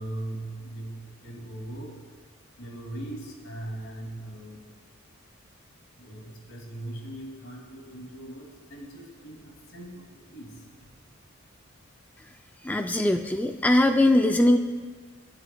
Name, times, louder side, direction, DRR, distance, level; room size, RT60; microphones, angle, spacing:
voice 1, 0.0-1.9 2.6-4.6 6.0-8.5 8.7-9.4 9.7-9.9 10.3-10.5, right 1 dB, 70° left, 0 dB, 2.6 m, -39 dB
voice 2, 12.6-14.6, left 1 dB, 10° left, 6 dB, 0.3 m, -21 dB
23.0 x 9.6 x 2.3 m, 1.5 s
head